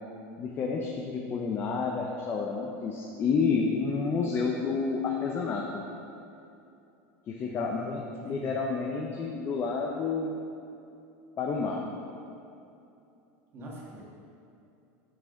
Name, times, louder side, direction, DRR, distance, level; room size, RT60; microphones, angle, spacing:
voice 1, 0.4-5.8 7.3-10.4 11.4-11.9, left 5 dB, 30° left, 0 dB, 0.7 m, -30 dB
voice 2, 7.4-8.6 13.5-14.0, equal, 35° right, -3 dB, 1.7 m, -45 dB
9.4 x 6.1 x 3.9 m, 2.7 s
supercardioid pair, 140°, 7 cm